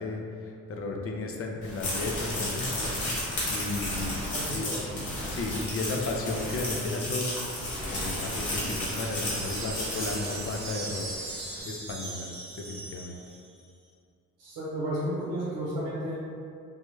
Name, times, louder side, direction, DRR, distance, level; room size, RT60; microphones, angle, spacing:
voice 1, 0.0-2.9 3.5-7.3 7.9-11.1 11.6-12.3 12.6-13.2, left 2 dB, 45° left, 2 dB, 0.5 m, -34 dB
sound 1, 1.6-11.1, left 1 dB, 70° left, 1.1 m, -33 dB
voice 2, 4.3-4.8 14.4-16.2, right 1 dB, 90° right, -8 dB, 0.8 m, -32 dB
sound 2, 8.1-13.6, right 2 dB, 60° right, 0.9 m, -40 dB
3.4 x 2.1 x 3.1 m, 2.4 s
cardioid pair, 70°, 31 cm